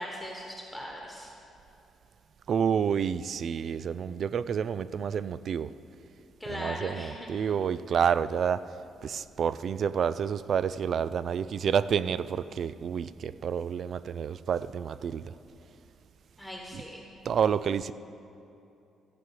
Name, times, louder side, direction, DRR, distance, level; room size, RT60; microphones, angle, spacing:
voice 1, 0.0-1.3 6.4-7.3 16.4-17.0, equal, 5° left, 1.3 m, -39 dB
voice 2, 2.5-5.7 6.5-8.7 9.0-15.3 16.7-16.8 17.3-17.9, right 7 dB, 60° right, 0.3 m, -29 dB
14.5 x 4.9 x 7.6 m
cardioid pair, 90°, 0 cm